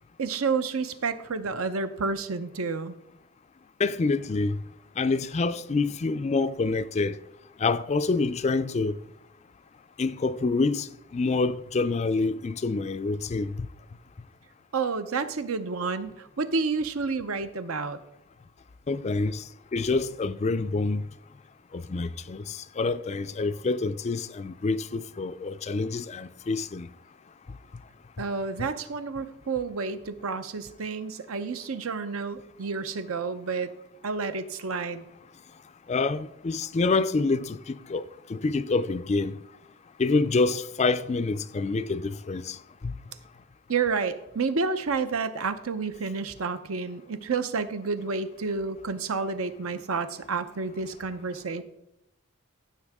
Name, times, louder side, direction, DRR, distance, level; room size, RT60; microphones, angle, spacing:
voice 1, 0.2-3.0 14.7-18.0 28.2-33.7 34.0-35.1 43.7-51.6, right 4 dB, 75° right, 0.7 m, -30 dB
voice 2, 3.8-4.6 5.0-7.2 7.6-8.9 10.0-13.7 18.9-19.4 19.7-21.0 21.7-26.9 35.9-38.0 38.3-39.4 40.0-42.6 42.8-42.9, left 3 dB, 30° left, 0.3 m, -27 dB
15.0 x 6.5 x 3.6 m
head